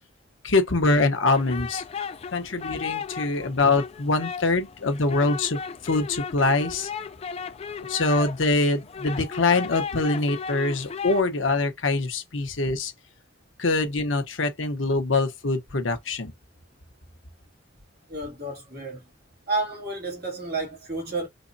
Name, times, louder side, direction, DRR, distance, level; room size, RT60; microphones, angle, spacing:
voice 1, 0.4-1.8 2.3-6.9 7.9-12.9 13.6-16.3, left 3 dB, 85° left, 1.0 m, -24 dB
sound 1, 1.3-11.2, left 6 dB, 30° left, 0.3 m, -36 dB
voice 2, 18.1-19.1 19.5-21.3, right 2 dB, 50° right, 2.4 m, -31 dB
3.9 x 3.1 x 2.7 m
head